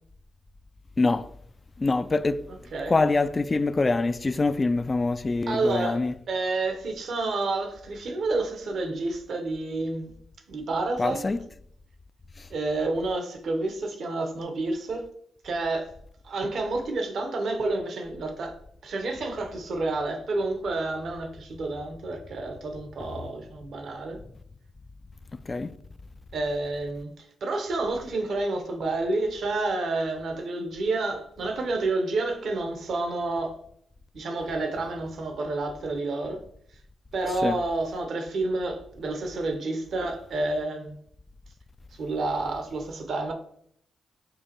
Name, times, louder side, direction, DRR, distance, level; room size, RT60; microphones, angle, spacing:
voice 1, 1.8-2.4 2.9-6.1 11.0-11.4 25.5-25.7 37.4-37.6, left 3 dB, 35° left, 0.3 m, -24 dB
voice 2, 5.5-10.1 10.5-11.2 12.5-15.1 15.4-15.9 16.2-24.2 26.3-33.6 34.1-36.4 37.1-41.0 41.9-43.3, right 2 dB, 65° right, 0.9 m, -29 dB
6.5 x 2.5 x 2.9 m
hypercardioid pair, 40°, 0 cm